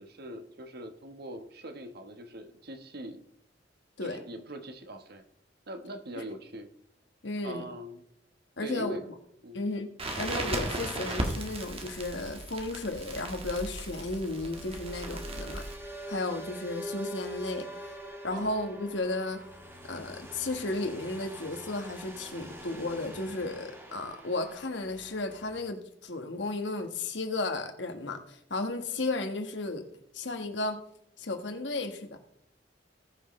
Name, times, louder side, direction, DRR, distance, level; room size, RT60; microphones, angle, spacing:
voice 1, 0.0-3.2 4.0-5.2 5.7-6.7 7.4-8.0 8.6-9.1 9.4-9.6 18.3-18.5, right 1 dB, 60° right, 7 dB, 1.2 m, -42 dB
voice 2, 7.2-7.6 8.6-9.0 9.5-9.9 10.2-15.6 16.1-17.7 18.2-19.4 19.9-29.8 30.1-30.8 31.2-32.2, left 2 dB, 75° left, 6 dB, 1.5 m, -34 dB
Crackle, 10.0-15.8, right 1 dB, 35° right, 1.7 m, -36 dB
sound 1, 13.9-25.6, right 1 dB, 15° right, 1.9 m, -44 dB
19.0 x 6.5 x 3.2 m, 0.73 s
head